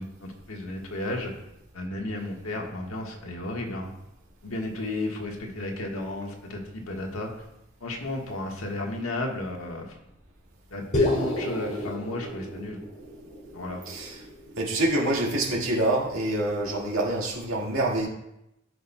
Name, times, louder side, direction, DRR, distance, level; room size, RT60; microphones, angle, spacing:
voice 1, 0.0-1.3 1.7-3.9 4.4-7.4 7.8-9.9 10.7-12.8 13.5-13.8, left 2 dB, 85° left, 1 dB, 1.4 m, -33 dB
sound 1, 10.9-15.3, equal, 35° left, 2.2 m, -32 dB
voice 2, 13.9-14.2 14.6-18.1, right 1 dB, 75° right, -2 dB, 1.9 m, -26 dB
14.0 x 5.7 x 2.2 m, 0.85 s
head